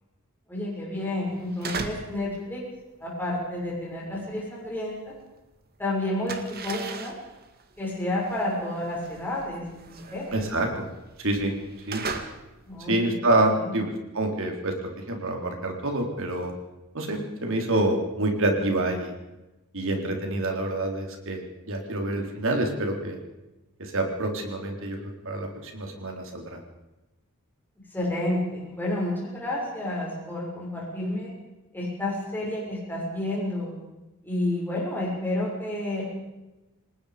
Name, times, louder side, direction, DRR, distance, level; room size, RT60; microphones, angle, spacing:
voice 1, 0.5-2.6 3.0-5.0 5.8-7.1 7.8-10.4 12.7-13.1 13.5-13.8 27.9-31.3 31.7-33.7 34.2-36.0, left 1 dB, 10° left, -5 dB, 6.3 m, -30 dB
sound 1, 1.4-2.2 2.5-5.5 5.7-12.9, right 4 dB, 45° right, 1.9 m, -38 dB
voice 2, 10.3-10.9 11.2-11.5 11.9-12.0 12.9-16.5 16.9-19.1 19.7-23.2 23.8-26.6, right 2 dB, 60° right, 3 dB, 3.9 m, -27 dB
28.0 x 19.0 x 5.1 m, 1.0 s
head